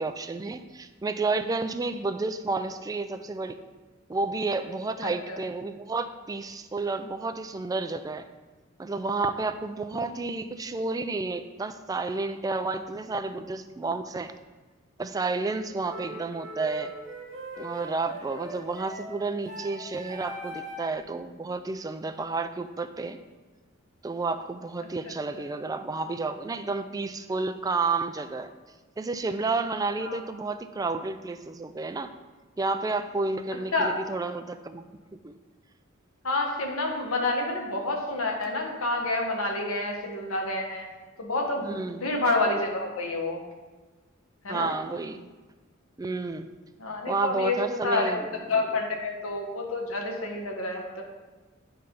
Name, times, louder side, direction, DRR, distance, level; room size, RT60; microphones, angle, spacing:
voice 1, 0.0-3.6 4.1-8.3 8.8-14.3 15.0-16.9 17.6-23.2 24.0-28.5 29.0-32.1 32.6-34.8 35.1-35.4 41.6-42.1 44.5-45.3 46.0-46.5 47.1-48.8, right 3 dB, 20° right, 8 dB, 0.3 m, -31 dB
voice 2, 5.0-5.4 25.1-25.2 30.0-30.2 33.7-33.9 36.2-40.9 41.2-43.4 44.4-44.7 46.8-48.2 48.5-51.0, left 2 dB, 85° left, 1 dB, 1.2 m, -28 dB
sound 1, 15.9-21.0, right 1 dB, 65° right, 1.4 m, -40 dB
9.7 x 3.3 x 5.2 m, 1.3 s
head